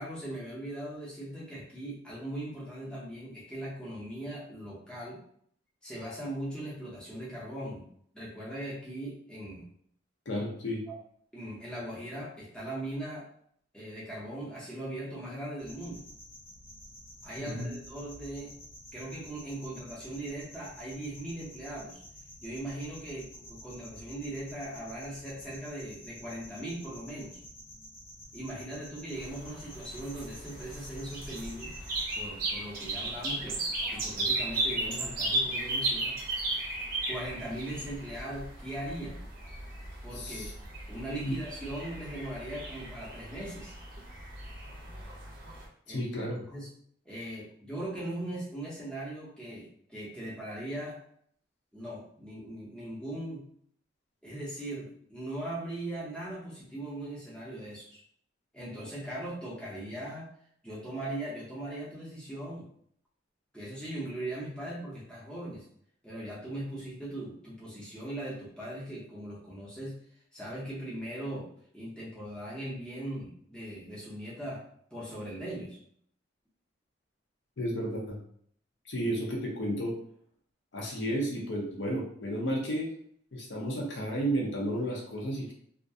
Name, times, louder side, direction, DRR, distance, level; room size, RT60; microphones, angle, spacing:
voice 1, 0.0-5.2 5.8-7.9 8.1-9.7 10.9-11.0 11.3-13.3 13.7-16.0 17.2-18.5 18.9-22.0 22.4-27.4 28.3-31.7 32.1-33.6 33.9-36.2 37.1-39.2 40.0-40.5 40.9-43.7 45.9-46.7 47.0-51.0 51.7-53.4 54.2-58.0 58.5-60.3 60.6-62.7 63.5-65.7 66.0-70.0 70.3-71.5 71.7-74.6 74.9-75.8 85.5-85.6, right 1 dB, 5° left, -7 dB, 0.6 m, -39 dB
voice 2, 10.3-10.8 17.4-17.7 40.1-40.5 41.2-41.3 45.9-46.4 77.6-78.2 78.9-79.9 80.7-82.9 83.3-85.5, equal, 60° left, -1 dB, 0.6 m, -32 dB
sound 1, 15.6-32.2, equal, 80° left, 1.0 m, -50 dB
sound 2, 29.2-45.7, right 2 dB, 45° right, 0.6 m, -36 dB
2.3 x 2.1 x 2.6 m, 0.64 s
head